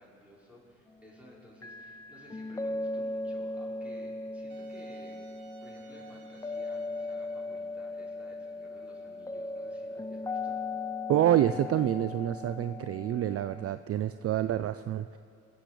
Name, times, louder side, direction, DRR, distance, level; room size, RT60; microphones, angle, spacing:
voice 1, 0.0-5.3 5.6-10.6, equal, 5° right, -5 dB, 5.1 m, -55 dB
sound 1, 1.6-13.7, left 3 dB, 10° left, 0.4 m, -38 dB
Wind instrument woodwind instrument, 4.5-10.1, right 4 dB, 70° right, 1.4 m, -56 dB
voice 2, 11.1-15.2, right 12 dB, 50° right, 12 dB, 0.4 m, -27 dB
22.5 x 8.1 x 6.8 m, 2.4 s
cardioid pair, 90°, 30 cm